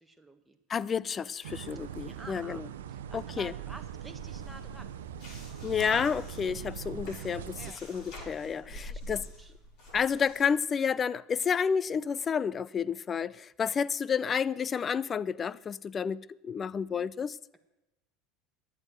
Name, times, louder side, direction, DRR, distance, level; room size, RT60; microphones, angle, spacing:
voice 1, 0.0-0.6 1.7-2.6 2.9-5.0 7.6-7.8 8.7-9.5, right 2 dB, 5° right, 1.5 m, -50 dB
voice 2, 0.7-2.7 3.1-3.5 5.6-9.3 9.9-17.4, left 7 dB, 30° left, 0.5 m, -30 dB
sound 1, 1.4-7.7, right 10 dB, 70° right, 0.8 m, -42 dB
sound 2, 3.8-10.6, left 1 dB, 55° left, 6.5 m, -46 dB
14.0 x 9.8 x 7.9 m
figure-of-eight pair, 70°, 0 cm